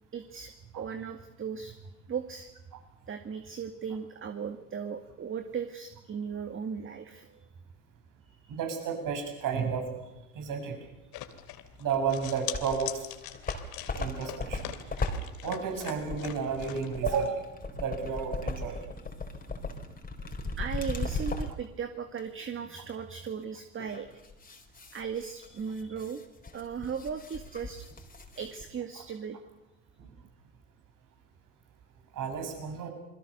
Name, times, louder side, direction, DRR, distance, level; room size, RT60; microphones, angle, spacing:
voice 1, 0.1-2.5 3.1-7.5 8.3-8.4 20.2-20.3 20.6-24.1 24.9-26.2 26.5-27.9 28.4-29.4, right 6 dB, 30° right, 8 dB, 2.1 m, -37 dB
voice 2, 8.5-9.9 10.3-10.8 11.8-13.0 14.0-14.6 15.4-17.5 17.8-18.8 32.1-32.9, right 6 dB, 50° right, 4 dB, 7.7 m, -32 dB
sound 1, 11.1-17.3, left 13 dB, 60° left, 2.8 m, -42 dB
sound 2, 12.2-12.9 13.2-21.7 22.2-22.3 23.8-28.6, left 2 dB, 20° left, 4.4 m, -37 dB
29.0 x 22.0 x 6.9 m, 0.96 s
hypercardioid pair, 75°, 41 cm